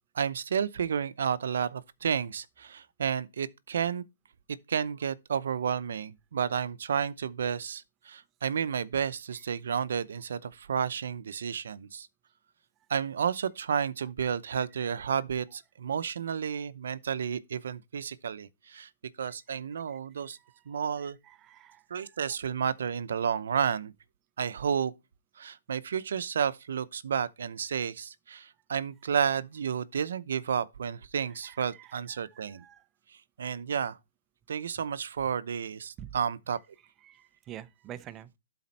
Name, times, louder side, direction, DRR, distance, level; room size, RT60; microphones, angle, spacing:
voice 1, 0.1-4.0 4.7-12.1 12.9-18.9 19.2-20.4 20.7-21.2 21.9-23.9 24.4-24.9 25.4-32.6 33.4-34.0 34.5-36.6, right 7 dB, 70° right, 0.7 m, -31 dB
voice 2, 21.3-21.8 32.3-32.8 36.0-36.1 37.1-38.3, right 11 dB, 20° right, 0.5 m, -46 dB
12.0 x 4.2 x 4.2 m
hypercardioid pair, 160°, 0 cm